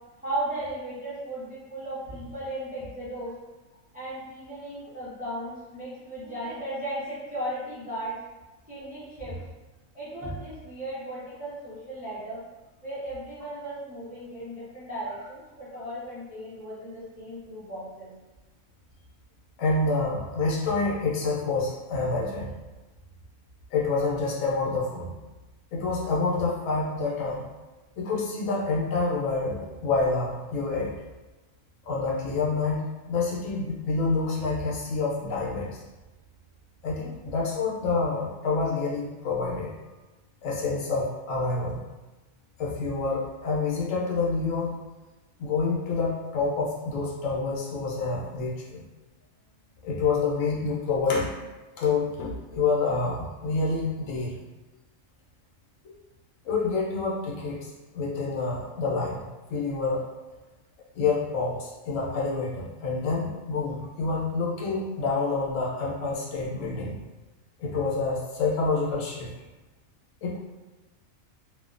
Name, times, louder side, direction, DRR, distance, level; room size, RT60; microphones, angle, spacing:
voice 1, 0.2-3.3 3.9-8.2 8.7-9.5 9.9-12.4 12.8-18.1, right 1 dB, 10° right, -10 dB, 0.4 m, -36 dB
voice 2, 19.6-22.5 23.7-25.1 25.7-27.5 28.0-30.9 31.9-35.8 36.8-39.7 40.4-41.8 42.6-44.7 45.4-48.8 49.8-51.4 51.8-54.4 55.8-55.9 56.4-59.2 59.5-60.1 60.9-67.0 67.6-69.3 70.2-70.4, left 3 dB, 70° left, -3 dB, 1.0 m, -27 dB
2.8 x 2.1 x 2.4 m, 1.1 s
omnidirectional pair, 1.4 m